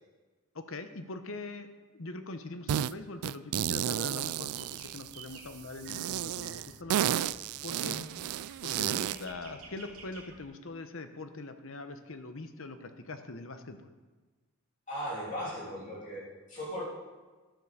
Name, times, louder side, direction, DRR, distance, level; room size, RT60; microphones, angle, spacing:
voice 1, 0.5-1.7 1.9-8.0 8.6-13.9, left 2 dB, 65° left, 8 dB, 0.9 m, -42 dB
sound 1, 2.7-2.9 3.2-5.4 5.9-9.2, right 11 dB, 90° right, 0.3 m, -32 dB
sound 2, 3.9-10.5, right 3 dB, 75° right, 2.6 m, -53 dB
voice 2, 14.9-16.8, equal, 35° left, -5 dB, 3.1 m, -38 dB
11.5 x 7.3 x 6.6 m, 1.3 s
head